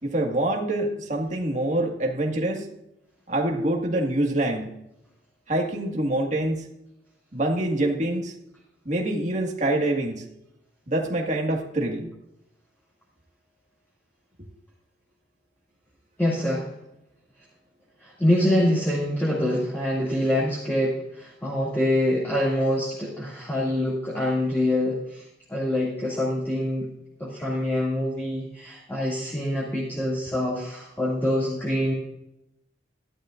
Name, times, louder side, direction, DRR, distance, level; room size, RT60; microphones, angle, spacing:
voice 1, 0.0-2.7 3.3-4.7 5.5-6.7 7.3-8.3 8.9-10.2 10.9-12.1, right 1 dB, 40° right, 0 dB, 1.8 m, -25 dB
voice 2, 16.2-16.7 18.0-25.2 25.5-26.9 27.2-31.9, left 1 dB, 10° left, -7 dB, 2.3 m, -25 dB
14.5 x 11.5 x 2.5 m, 0.85 s
head